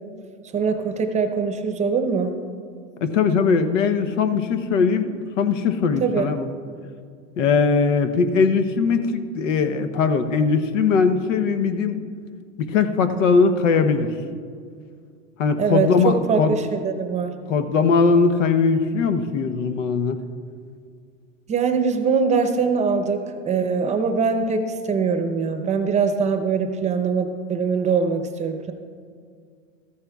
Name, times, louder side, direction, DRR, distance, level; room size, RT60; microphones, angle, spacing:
voice 1, 0.5-2.3 6.0-6.2 15.6-17.3 21.5-28.7, right 5 dB, 20° right, 7 dB, 0.7 m, -22 dB
voice 2, 3.0-6.5 7.4-12.0 12.7-14.1 15.4-16.5 17.5-20.2, left 5 dB, 80° left, 10 dB, 0.9 m, -20 dB
14.0 x 14.0 x 2.4 m, 2.1 s
hypercardioid pair, 120°, 37 cm